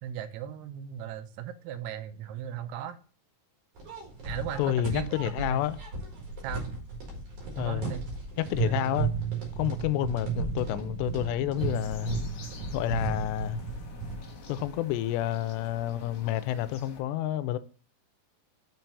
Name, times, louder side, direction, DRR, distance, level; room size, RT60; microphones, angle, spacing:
voice 1, 0.0-3.0 4.2-5.6 6.4-6.7 7.6-8.0 8.6-8.9, right 9 dB, 80° right, 2.6 m, -37 dB
sound 1, 3.8-14.7, right 5 dB, 55° right, 2.7 m, -34 dB
voice 2, 4.6-5.8 7.6-7.9 8.4-9.1 9.6-12.2 12.7-13.6 14.5-17.6, left 13 dB, 90° left, 2.7 m, -29 dB
sound 2, 11.6-17.0, left 6 dB, 65° left, 1.7 m, -49 dB
6.3 x 4.5 x 5.3 m
omnidirectional pair, 4.8 m